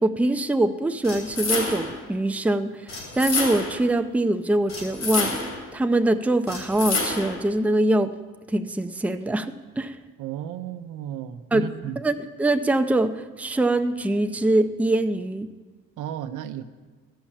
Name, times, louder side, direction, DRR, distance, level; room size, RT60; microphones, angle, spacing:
voice 1, 0.0-5.4 5.7-8.1 8.5-10.0 11.5-15.5, right 1 dB, 5° right, 8 dB, 0.5 m, -23 dB
sound 1, 1.0-2.0 2.9-3.9 4.7-5.7 6.5-7.4, left 3 dB, 60° left, 2.5 m, -28 dB
voice 2, 10.2-12.0 16.0-16.6, right 10 dB, 85° right, 9 dB, 0.7 m, -33 dB
13.0 x 5.6 x 7.3 m, 1.4 s
cardioid pair, 90°, 30 cm